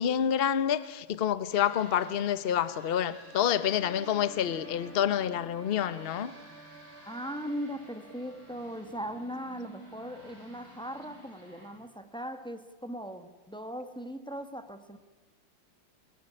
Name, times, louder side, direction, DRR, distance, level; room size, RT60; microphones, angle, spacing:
voice 1, 0.0-6.3, left 9 dB, 65° left, 0.5 m, -28 dB
sound 1, 1.5-11.7, right 2 dB, 45° left, 8.5 m, -52 dB
sound 2, 3.2-8.6, right 2 dB, 80° right, 4.8 m, -52 dB
voice 2, 7.0-15.0, equal, 5° left, 0.7 m, -39 dB
23.5 x 19.0 x 9.9 m
omnidirectional pair, 2.3 m